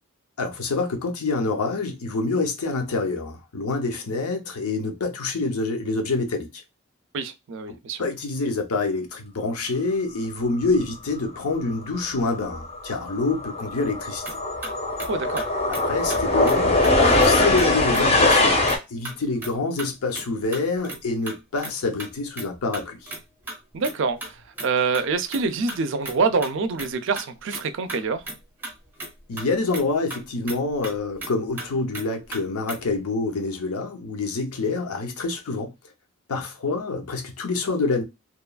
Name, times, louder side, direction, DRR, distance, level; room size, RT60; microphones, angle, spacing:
voice 1, 0.4-6.6 7.7-14.2 15.7-23.1 29.3-35.7 36.3-38.0, left 3 dB, 80° left, 0.7 m, -27 dB
voice 2, 7.1-8.0 15.1-15.4 23.7-28.3, right 4 dB, 55° right, 0.4 m, -26 dB
sound 1, 12.0-12.2 12.5-18.8, left 2 dB, 25° left, 0.6 m, -21 dB
sound 2, 14.2-14.4 14.6-14.7 15.0-15.1 15.4-15.5 15.7-15.8 16.1-16.6 16.8-17.3 17.6-18.0 18.3-18.4 18.7-18.8 19.0-19.5 19.8-21.7 22.0-22.5 22.7-23.6 23.8-23.9 24.2-25.4 25.7-26.9 27.1-27.3 27.5-27.6 27.9-28.4 28.6-29.1 29.4-29.5 29.7-29.8 30.1-30.2 30.5-31.3 31.6-31.7 31.9-32.0 32.3-32.4 32.7-32.9, right 2 dB, 10° right, 0.7 m, -35 dB
2.9 x 2.3 x 2.2 m
head